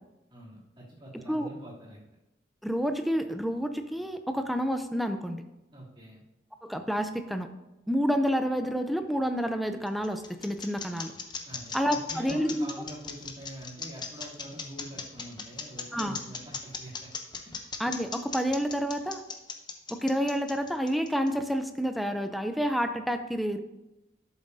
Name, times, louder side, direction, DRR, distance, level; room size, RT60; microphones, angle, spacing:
voice 1, 0.3-2.0 5.7-6.2 11.5-17.1, right 1 dB, 30° right, -7 dB, 2.9 m, -45 dB
voice 2, 2.6-5.4 6.6-7.5 7.9-11.1 11.7-12.7 15.9-16.2 17.8-19.2 19.9-23.6, equal, ahead, 7 dB, 0.4 m, -29 dB
sound 1, 9.5-21.5, left 5 dB, 25° left, 0.8 m, -38 dB
12.5 x 7.2 x 2.7 m, 0.96 s
head